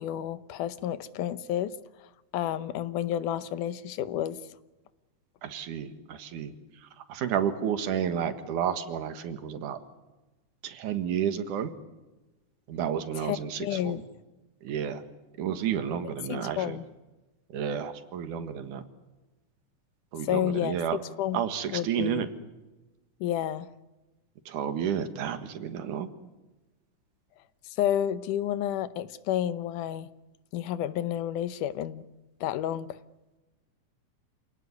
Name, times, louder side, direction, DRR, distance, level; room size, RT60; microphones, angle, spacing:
voice 1, 0.0-1.7 2.3-4.4 13.2-14.0 16.0-16.8 20.2-20.8 21.0-21.4 21.7-22.3 23.2-23.7 27.8-30.1 30.5-32.1 32.4-33.0, left 11 dB, 90° left, 15 dB, 2.5 m, -30 dB
voice 2, 5.4-6.5 7.1-9.8 10.6-11.7 12.7-13.9 14.6-15.0 15.4-16.8 17.5-18.8 20.1-21.0 21.3-22.3 24.5-26.1, right 8 dB, 85° right, 10 dB, 3.1 m, -31 dB
27.0 x 18.0 x 9.7 m, 1.1 s
omnidirectional pair, 3.5 m